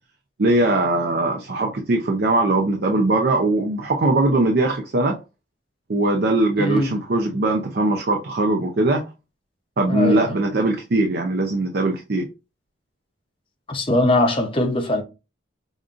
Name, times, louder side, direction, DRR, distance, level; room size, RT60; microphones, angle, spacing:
voice 1, 0.4-5.2 5.9-9.1 9.8-12.3, right 2 dB, 50° right, 0.5 m, -20 dB
voice 2, 6.6-6.9 9.9-10.3 13.7-15.0, left 1 dB, 25° left, 0.6 m, -21 dB
5.1 x 2.5 x 2.4 m
head